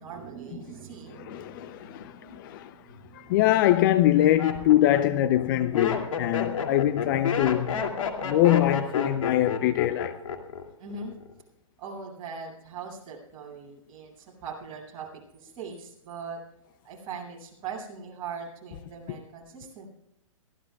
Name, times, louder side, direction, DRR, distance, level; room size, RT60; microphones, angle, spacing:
voice 1, 0.0-3.3 10.8-11.1 11.8-16.4 16.8-19.9, right 5 dB, 30° right, 7.2 m, -41 dB
voice 2, 1.1-2.7 3.1-7.8 8.2-10.2, left 13 dB, 40° left, 0.6 m, -23 dB
Laughter, 3.0-3.4 4.0-10.6 10.9-11.4, left 6 dB, 75° left, 2.5 m, -30 dB
23.0 x 16.0 x 2.3 m
hypercardioid pair, 140°, 17 cm